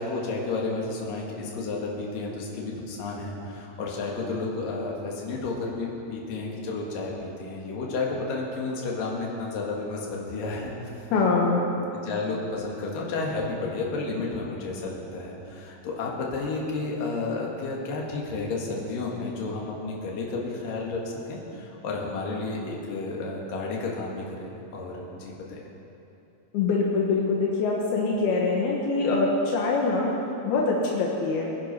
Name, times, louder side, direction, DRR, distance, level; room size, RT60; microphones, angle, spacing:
voice 1, 0.0-10.8 12.0-25.6, left 3 dB, 65° left, -2 dB, 3.5 m, -32 dB
voice 2, 11.1-11.6 26.5-30.1 30.4-31.5, left 3 dB, 80° left, -2 dB, 3.2 m, -24 dB
22.0 x 10.0 x 5.5 m, 2.9 s
omnidirectional pair, 4.3 m